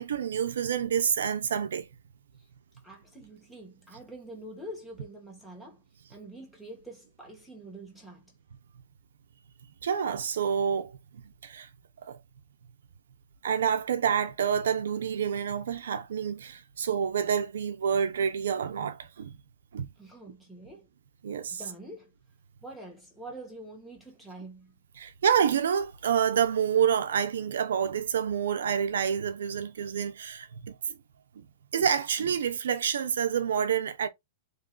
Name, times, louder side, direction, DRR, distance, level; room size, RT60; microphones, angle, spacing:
voice 1, 0.0-1.9 9.8-11.0 11.2-11.7 12.0-12.2 13.4-19.4 19.7-19.9 21.2-21.6 25.0-31.0 31.4-31.5 31.7-34.1, right 8 dB, 85° right, 0.6 m, -28 dB
voice 2, 2.8-5.8 6.1-8.4 20.0-20.9 21.5-22.1 22.6-24.8, right 1 dB, 5° left, 1.1 m, -45 dB
3.2 x 2.5 x 3.8 m
supercardioid pair, 170°, 0 cm